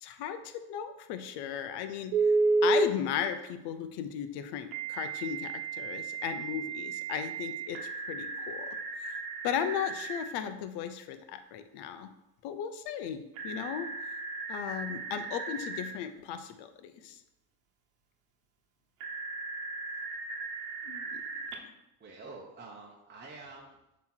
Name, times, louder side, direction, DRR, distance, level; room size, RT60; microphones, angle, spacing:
voice 1, 0.0-2.4 2.6-7.8 8.1-9.2 9.4-12.1 12.4-13.9 14.5-17.2 20.8-21.2, left 9 dB, 60° left, 9 dB, 0.8 m, -36 dB
Telephone, 2.1-2.9 4.7-10.2 13.3-15.9 19.0-21.5, right 3 dB, 75° right, 1.1 m, -33 dB
voice 2, 22.0-24.0, right 3 dB, 20° right, -2 dB, 1.0 m, -48 dB
6.9 x 3.2 x 4.4 m, 0.89 s
hypercardioid pair, 75°, 46 cm